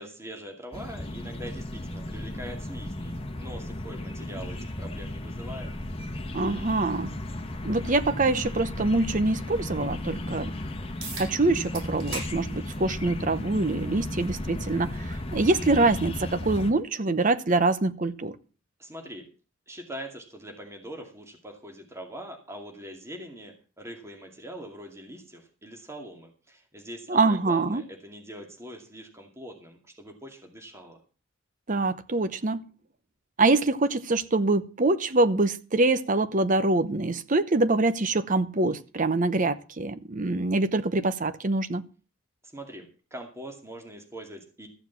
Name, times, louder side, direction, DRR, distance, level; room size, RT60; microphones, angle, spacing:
voice 1, 0.0-5.7 18.8-19.2 19.7-31.0 42.4-44.7, equal, 15° right, 2.4 m, -43 dB
sound 1, 0.7-16.7, left 1 dB, 30° left, 1.3 m, -35 dB
voice 2, 6.3-7.1 7.6-10.5 11.1-18.4 27.1-27.8 31.7-32.6 33.4-41.8, right 2 dB, 40° right, 0.8 m, -25 dB
sound 2, 11.0-11.3 11.7-12.3 12.7-12.9 13.9-14.0 19.0-19.1, right 3 dB, 85° right, 6.9 m, -36 dB
14.5 x 7.2 x 7.2 m
head